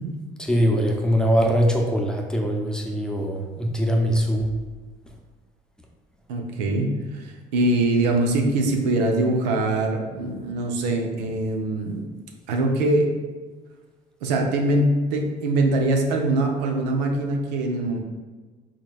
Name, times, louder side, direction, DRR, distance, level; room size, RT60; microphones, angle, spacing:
voice 1, 0.4-4.5, equal, 5° left, 1 dB, 0.7 m, -22 dB
voice 2, 6.3-12.0 12.5-13.1 14.2-18.0, right 2 dB, 80° right, 2 dB, 0.6 m, -23 dB
4.6 x 3.7 x 2.4 m, 1.3 s
hypercardioid pair, 65°, 21 cm